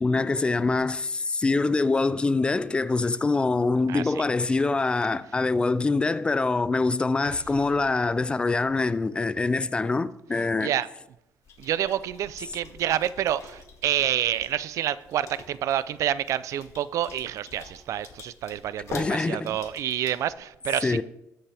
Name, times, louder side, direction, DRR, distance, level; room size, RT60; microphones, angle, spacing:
voice 1, 0.0-10.7 18.9-19.5 20.8-21.0, left 3 dB, 15° left, 0.4 m, -24 dB
voice 2, 3.9-4.2 10.6-10.9 11.6-21.0, right 11 dB, 65° right, 0.5 m, -28 dB
sound 1, 11.4-20.3, left 4 dB, 55° left, 1.9 m, -46 dB
20.0 x 7.4 x 3.4 m
cardioid pair, 135°, 6 cm